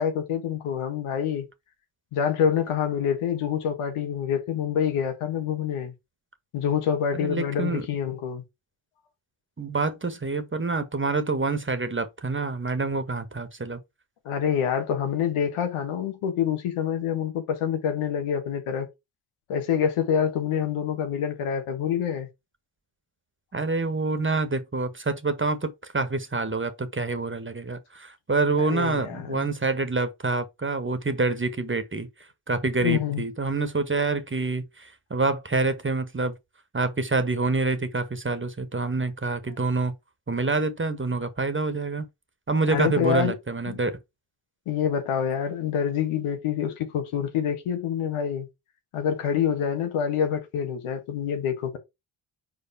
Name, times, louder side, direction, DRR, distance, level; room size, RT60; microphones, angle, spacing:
voice 1, 0.0-1.5 2.1-5.9 6.5-8.4 14.2-18.9 19.5-22.3 28.6-29.5 32.8-33.2 42.7-43.3 43.7-43.8 44.7-48.5 48.9-51.8, left 8 dB, 85° left, 1.6 m, -26 dB
voice 2, 7.1-7.9 9.6-13.8 23.5-32.1 32.5-36.4 36.7-39.9 40.3-42.1 42.5-44.0, right 3 dB, 25° right, 1.6 m, -27 dB
4.8 x 4.6 x 5.7 m
supercardioid pair, 50°, 49 cm